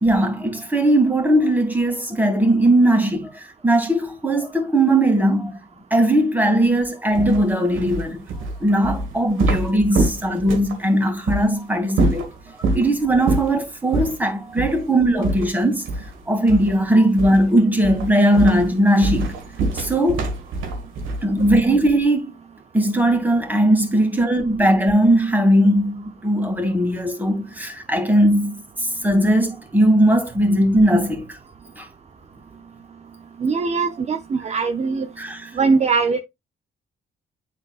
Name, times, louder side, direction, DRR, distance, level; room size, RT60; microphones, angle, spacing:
voice 1, 0.0-5.6 5.9-8.3 8.6-12.3 12.7-15.8 16.3-19.3 19.7-20.3 21.2-22.3 22.7-31.4 31.8-31.9 35.2-35.5, right 1 dB, 10° right, 2.3 m, -19 dB
sound 1, 7.1-10.8 11.3-11.4 11.9-12.9 13.3-13.6 13.9-14.2 14.6-14.8 15.2-16.2 16.5-16.8 17.2-17.5 17.8-21.8, right 2 dB, 85° right, 1.6 m, -24 dB
voice 2, 33.4-35.1 35.6-36.2, right 4 dB, 35° right, 0.7 m, -21 dB
10.0 x 4.0 x 2.4 m
cardioid pair, 90°, 20 cm